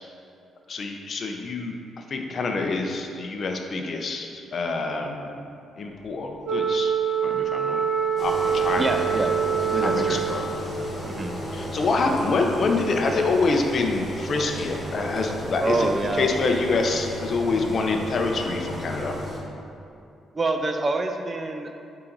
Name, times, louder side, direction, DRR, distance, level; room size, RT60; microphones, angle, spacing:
voice 1, 0.7-5.4 5.8-6.9 7.2-7.8 8.2-9.0 9.8-10.5 11.5-19.1, left 3 dB, 40° left, 3 dB, 0.6 m, -26 dB
Wind instrument woodwind instrument, 6.4-10.8, right 7 dB, 85° right, 1.0 m, -25 dB
Engine, 8.2-19.4, equal, 5° left, 1.5 m, -34 dB
voice 2, 8.8-9.4 9.6-10.2 11.1-11.4 15.6-16.3 20.3-21.7, right 2 dB, 20° right, 5 dB, 0.3 m, -26 dB
7.6 x 3.9 x 4.5 m, 2.5 s
cardioid pair, 155°, 0 cm